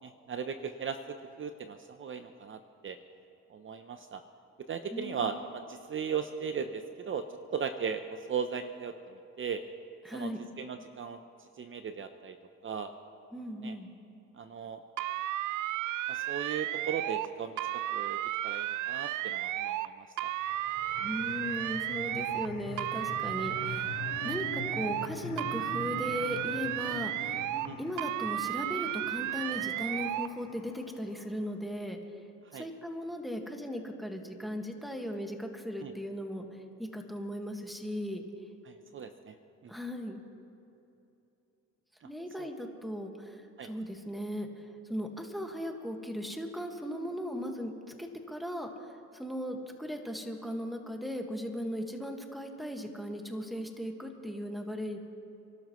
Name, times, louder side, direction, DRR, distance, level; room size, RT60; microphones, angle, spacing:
voice 1, 0.0-3.0 3.5-4.2 4.7-7.3 7.5-8.9 9.4-9.6 10.1-10.3 10.6-11.2 11.6-12.4 12.6-12.9 13.6-13.7 14.4-14.8 16.1-17.6 17.9-18.2 18.4-20.3 27.6-27.8 32.5-32.7 35.8-35.9 38.7-39.3 39.6-39.7 42.4-42.5 43.6-43.7, right 6 dB, 40° right, 8 dB, 0.7 m, -37 dB
voice 2, 4.9-5.3 10.0-10.4 13.3-13.9 21.0-23.9 24.2-27.4 27.8-32.0 32.5-38.2 39.7-40.2 42.0-47.7 48.0-55.0, equal, ahead, 3 dB, 1.7 m, -37 dB
sound 1, 15.0-17.3 17.6-19.9 20.2-22.5 22.8-25.1 25.4-27.7 28.0-30.3, right 14 dB, 80° right, 0.5 m, -33 dB
sound 2, 20.2-31.4, left 5 dB, 85° left, 1.5 m, -44 dB
29.5 x 12.5 x 3.1 m, 2.9 s
cardioid pair, 90°, 30 cm